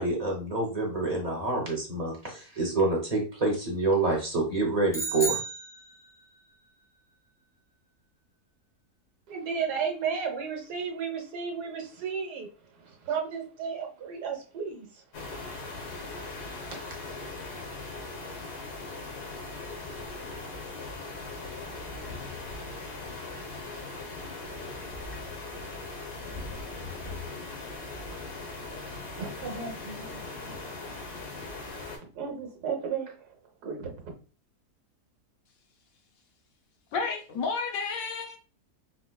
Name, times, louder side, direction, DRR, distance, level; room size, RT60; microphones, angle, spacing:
voice 1, 0.0-5.4, right 3 dB, 30° right, 0.9 m, -27 dB
sound 1, 4.9-6.4, right 3 dB, 5° left, 0.6 m, -32 dB
voice 2, 9.3-12.5 12.7-15.0 16.7-16.8 26.7-26.9 28.1-28.2 29.1-30.7 31.0-31.5 32.1-33.4 33.6-34.1, right 6 dB, 80° right, 1.4 m, -34 dB
sound 2, 15.1-32.0, left 3 dB, 85° left, 1.6 m, -39 dB
voice 3, 36.9-38.4, left 4 dB, 65° left, 1.0 m, -31 dB
4.6 x 2.2 x 2.2 m
omnidirectional pair, 1.7 m